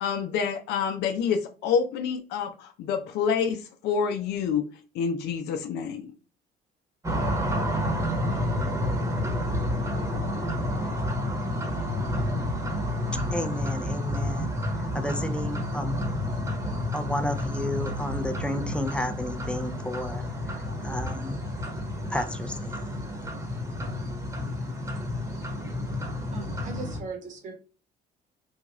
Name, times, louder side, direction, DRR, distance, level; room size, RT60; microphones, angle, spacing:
voice 1, 0.0-4.6 4.9-6.1, left 6 dB, 80° left, 0.5 m, -27 dB
sound 1, 7.0-27.0, left 1 dB, 20° right, 1.1 m, -30 dB
voice 2, 13.3-21.4 22.1-22.8, left 1 dB, 5° left, 0.4 m, -33 dB
voice 3, 26.3-27.6, right 3 dB, 50° right, 1.3 m, -38 dB
3.5 x 2.3 x 3.0 m
cardioid pair, 110°, 17 cm